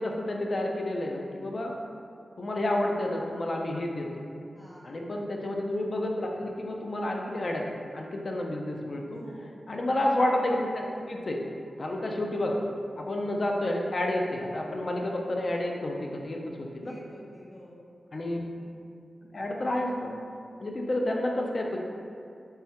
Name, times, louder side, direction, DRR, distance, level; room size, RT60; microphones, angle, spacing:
voice 1, 0.0-1.7 2.4-4.1 4.8-7.7 7.9-9.2 9.7-11.4 11.8-12.6 13.0-16.9 18.1-18.5 19.3-20.1 20.6-21.8, left 1 dB, 50° left, 1 dB, 0.4 m, -30 dB
voice 2, 4.5-5.1 9.1-9.6 16.8-17.8, equal, 20° left, -5 dB, 0.7 m, -48 dB
3.4 x 2.1 x 2.8 m, 2.5 s
cardioid pair, 65°, 0 cm